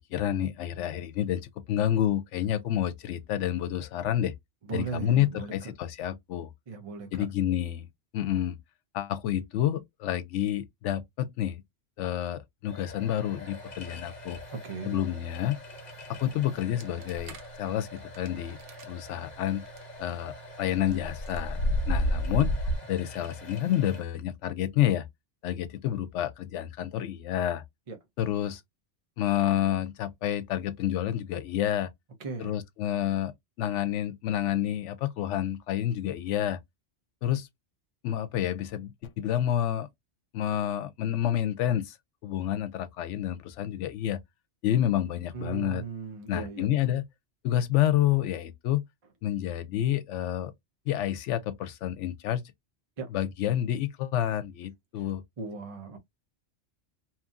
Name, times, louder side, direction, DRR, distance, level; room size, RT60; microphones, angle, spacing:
voice 1, 0.1-4.3 4.7-6.5 7.1-7.9 8.1-8.6 8.9-11.6 12.0-14.4 14.8-15.6 16.1-18.6 18.8-19.6 20.0-21.6 21.9-22.5 22.9-25.1 25.4-27.6 28.2-28.6 29.2-31.9 32.4-33.3 33.6-36.6 37.2-37.5 38.0-39.9 40.3-42.0 42.2-44.2 44.6-45.8 46.3-47.0 47.4-48.8 49.2-50.5 50.9-52.4 53.1-55.2, left 11 dB, 80° left, 0.9 m, -29 dB
voice 2, 4.7-5.5 6.7-7.3 14.5-15.0 27.9-28.0 32.2-32.6 45.3-46.7 53.0-53.1 55.0-55.1 55.4-56.0, right 5 dB, 35° right, 0.6 m, -37 dB
sound 1, 12.7-24.0, left 1 dB, 40° left, 1.0 m, -46 dB
sound 2, 16.8-17.5 18.1-18.3 18.6-18.8 19.5-19.8 20.7-22.8, equal, 85° right, 1.1 m, -29 dB
2.8 x 2.5 x 2.4 m
omnidirectional pair, 1.2 m